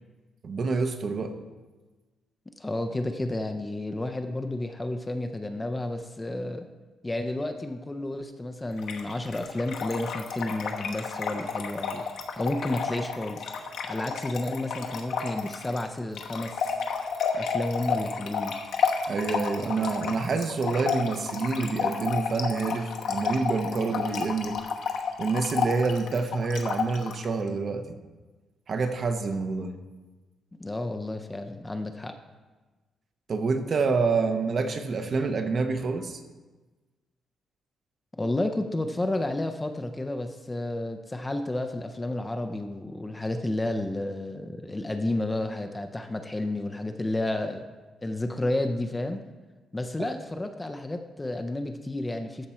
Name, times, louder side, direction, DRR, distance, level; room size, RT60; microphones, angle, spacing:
voice 1, 0.4-1.3 19.1-24.6 25.2-27.9 28.7-29.7 33.3-36.2, right 4 dB, 35° right, 7 dB, 0.7 m, -27 dB
voice 2, 2.6-6.7 7.0-12.0 12.4-13.5 13.8-16.7 17.3-18.6 30.6-32.1 38.1-47.7 48.0-49.2 49.7-52.5, left 1 dB, 10° left, 6 dB, 0.4 m, -31 dB
Trickle dribble / Fill (with liquid), 8.8-27.3, left 6 dB, 65° left, 1.0 m, -31 dB
14.0 x 5.9 x 4.3 m, 1.3 s
cardioid pair, 175°, 0 cm